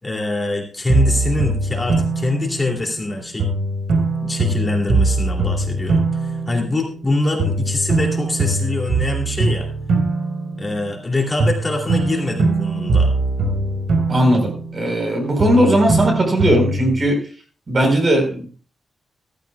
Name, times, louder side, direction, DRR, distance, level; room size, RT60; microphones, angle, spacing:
voice 1, 0.0-3.5 4.2-9.7 10.6-13.1, left 2 dB, 20° left, 0 dB, 2.6 m, -24 dB
sound 1, 0.9-3.0 3.4-7.1 7.4-11.1 11.4-15.1 15.4-17.0, right 2 dB, 80° right, 4.3 m, -21 dB
voice 2, 14.1-17.2 17.7-18.5, right 1 dB, 35° right, 3 dB, 4.2 m, -17 dB
14.5 x 14.5 x 2.3 m, 0.38 s
wide cardioid pair, 135°, 0 cm